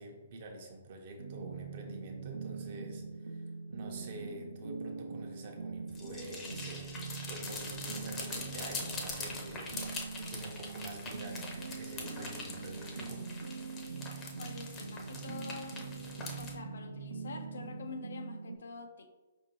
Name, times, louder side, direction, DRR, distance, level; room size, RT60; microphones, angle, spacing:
voice 1, 0.0-9.8 10.3-13.2, right 2 dB, 50° right, 2 dB, 0.8 m, -47 dB
sound 1, 1.2-18.6, right 4 dB, 80° right, 0.4 m, -43 dB
sound 2, 5.9-16.5, left 3 dB, 20° left, 0.6 m, -43 dB
voice 2, 14.4-15.9 16.4-19.1, left 4 dB, 70° left, 6 dB, 0.4 m, -46 dB
5.0 x 2.6 x 2.9 m, 1.2 s
figure-of-eight pair, 125°, 0 cm